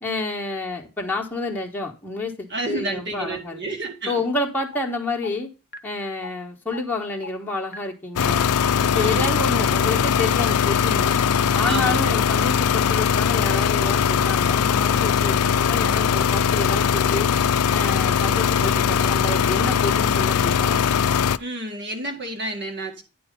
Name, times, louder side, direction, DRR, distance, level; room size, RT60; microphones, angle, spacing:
voice 1, 0.0-3.6 4.1-5.5 5.8-8.5 8.8-11.2 11.5-17.3 17.7-20.8, left 2 dB, 10° left, 1.2 m, -29 dB
voice 2, 2.5-4.3 8.9-9.3 11.6-12.2 21.4-23.0, right 2 dB, 50° right, 1.7 m, -30 dB
sound 1, 4.7-4.8 5.2-5.3 5.7-5.8 6.2-6.3 6.7-6.8 7.2-7.3 7.7-7.8 8.2-8.3 8.7-8.8 9.2-9.3, left 4 dB, 45° left, 0.8 m, -35 dB
sound 2, 8.2-21.4, left 7 dB, 80° left, 0.4 m, -20 dB
9.4 x 4.3 x 5.2 m
head